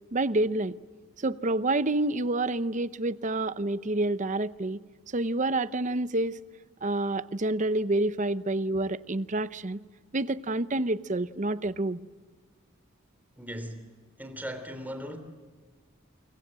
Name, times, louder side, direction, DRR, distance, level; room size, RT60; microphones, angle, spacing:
voice 1, 0.1-0.8 1.2-4.8 5.1-6.4 6.8-9.8 10.1-12.1, right 2 dB, 35° right, 0.8 m, -28 dB
voice 2, 13.4-13.9 14.2-15.2, equal, 10° right, 3.3 m, -38 dB
29.0 x 24.5 x 7.6 m
head